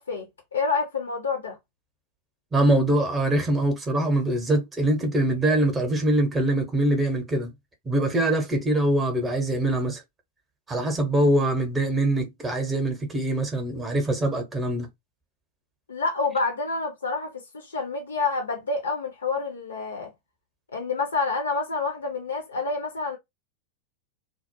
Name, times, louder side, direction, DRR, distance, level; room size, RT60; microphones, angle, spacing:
voice 1, 0.0-1.6 15.9-20.1 20.7-23.2, left 4 dB, 70° left, 0.6 m, -28 dB
voice 2, 2.5-7.5 7.8-10.0 10.7-14.9, right 1 dB, 15° right, 0.7 m, -23 dB
2.2 x 2.0 x 2.8 m
figure-of-eight pair, 90°, 0 cm